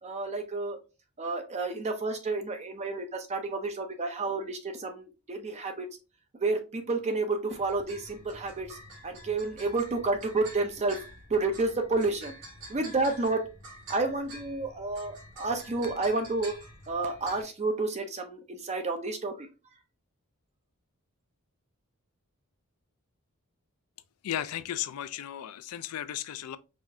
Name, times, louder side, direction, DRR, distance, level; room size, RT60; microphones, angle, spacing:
voice 1, 0.0-0.8 1.2-5.9 6.4-11.0 11.3-12.4 12.7-13.5 13.9-16.6 16.9-19.5, right 3 dB, 30° right, 0.5 m, -30 dB
sound 1, 7.5-17.4, right 1 dB, 55° right, 1.8 m, -48 dB
voice 2, 24.2-26.6, left 11 dB, 75° left, 0.4 m, -35 dB
4.8 x 2.4 x 2.7 m
head